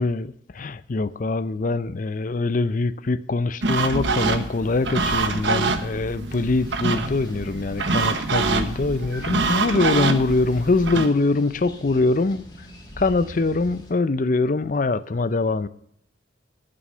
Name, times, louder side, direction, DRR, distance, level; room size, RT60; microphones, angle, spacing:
voice 1, 0.0-12.4 13.0-15.7, left 3 dB, 45° left, 0.5 m, -23 dB
sound 1, 3.6-11.1, right 3 dB, 75° right, 1.1 m, -25 dB
sound 2, 6.3-13.9, equal, 25° left, 2.7 m, -44 dB
12.0 x 7.8 x 5.5 m
head